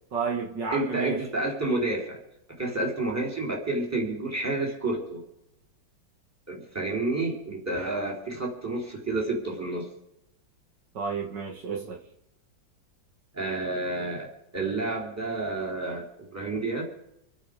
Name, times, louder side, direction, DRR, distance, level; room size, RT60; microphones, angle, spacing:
voice 1, 0.1-1.2 10.9-12.0, right 5 dB, 65° right, 0 dB, 2.4 m, -31 dB
voice 2, 0.7-2.2 2.6-5.2 6.5-9.9 13.3-14.3 14.5-16.8, right 2 dB, 10° right, -1 dB, 3.8 m, -30 dB
26.5 x 9.3 x 5.1 m, 0.82 s
omnidirectional pair, 2.1 m